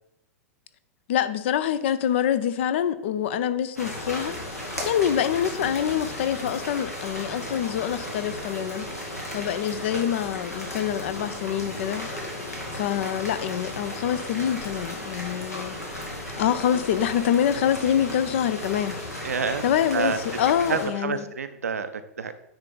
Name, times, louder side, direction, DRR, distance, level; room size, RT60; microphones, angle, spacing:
voice 1, 1.1-8.9 9.3-12.1 12.7-15.8 16.4-19.0 19.6-21.2, left 9 dB, 50° left, 0.5 m, -25 dB
sound 1, 3.8-20.9, left 1 dB, 85° left, 1.7 m, -35 dB
voice 2, 19.2-19.7 19.9-20.2 20.7-22.3, right 5 dB, 70° right, 0.5 m, -28 dB
9.6 x 3.3 x 3.8 m
figure-of-eight pair, 100°, 8 cm